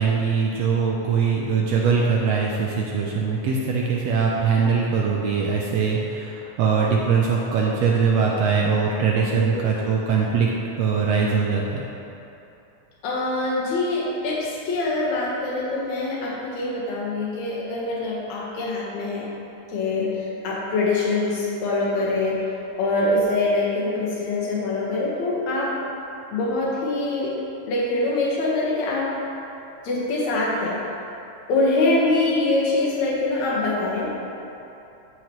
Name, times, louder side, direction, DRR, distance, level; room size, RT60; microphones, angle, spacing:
voice 1, 0.0-10.5 10.8-11.9, right 5 dB, 80° right, -2 dB, 1.5 m, -22 dB
voice 2, 9.3-9.6 13.0-19.3 19.7-22.4 22.8-25.7 26.3-27.3 27.7-29.1 29.8-30.8 31.5-34.1, left 2 dB, 65° left, -5 dB, 2.5 m, -24 dB
13.0 x 4.8 x 3.1 m, 2.8 s
omnidirectional pair, 3.6 m